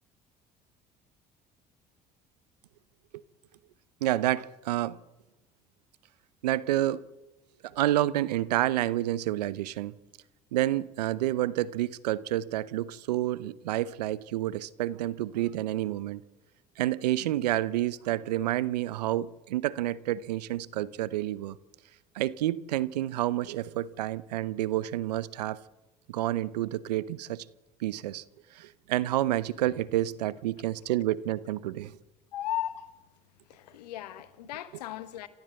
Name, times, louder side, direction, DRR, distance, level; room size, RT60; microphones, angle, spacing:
voice 1, 4.0-5.0 6.4-7.0 7.7-9.9 10.5-16.2 16.8-21.6 22.1-25.6 26.1-27.4 27.8-28.2 28.5-31.9, right 14 dB, 85° right, 0.7 m, -29 dB
Drum, 29.0-31.0, left 3 dB, 65° left, 6.3 m, -59 dB
voice 2, 32.3-32.9 33.4-35.3, left 13 dB, 85° left, 1.4 m, -36 dB
28.5 x 13.5 x 7.8 m
hypercardioid pair, 60°, 20 cm